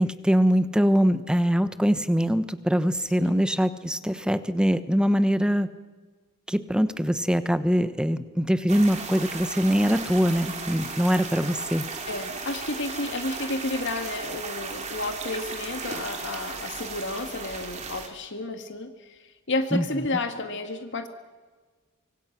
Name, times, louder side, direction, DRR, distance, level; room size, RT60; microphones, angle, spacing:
voice 1, 0.0-5.7 6.5-11.9 19.7-19.8, equal, 5° right, 12 dB, 1.0 m, -23 dB
sound 1, 8.7-18.1, right 4 dB, 35° right, 2.8 m, -36 dB
voice 2, 12.1-21.1, left 2 dB, 60° left, 7 dB, 1.9 m, -31 dB
25.0 x 24.5 x 6.0 m, 1.4 s
head